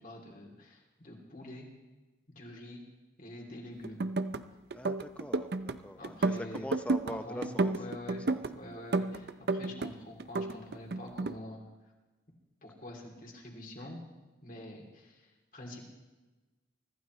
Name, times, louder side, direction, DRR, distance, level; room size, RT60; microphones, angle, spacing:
voice 1, 0.0-1.7 2.3-2.8 3.2-4.0 6.0-6.7 7.1-8.3 8.5-11.7 12.6-14.0 14.4-15.8, left 1 dB, 45° left, 0 dB, 2.8 m, -46 dB
sound 1, 3.8-4.4 4.7-5.8 6.0-7.1 7.4-8.5 8.9-9.9 10.2-11.3, right 3 dB, 55° right, 0.5 m, -31 dB
voice 2, 4.7-7.7 8.3-8.4, left 1 dB, 5° left, 9 dB, 0.6 m, -42 dB
24.5 x 14.5 x 3.1 m, 1.2 s
head